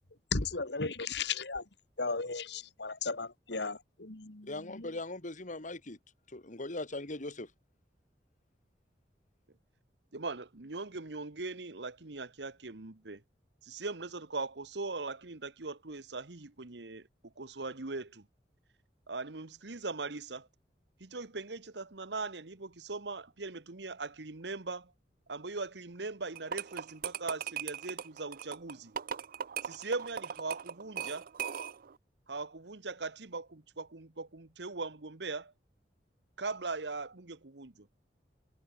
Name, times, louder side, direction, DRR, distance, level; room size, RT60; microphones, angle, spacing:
voice 1, 0.3-1.7 2.0-4.9, left 4 dB, 70° left, 2.2 m, -35 dB
voice 2, 4.5-6.0 6.3-7.5, left 2 dB, 45° left, 2.5 m, -40 dB
voice 3, 10.1-13.2 13.6-18.3 19.1-20.5 21.0-24.9 25.3-28.9 29.6-31.3 32.3-35.5 36.4-37.9, right 3 dB, 70° right, 1.4 m, -40 dB
sound 1, 26.4-31.9, right 8 dB, 55° right, 0.5 m, -39 dB
head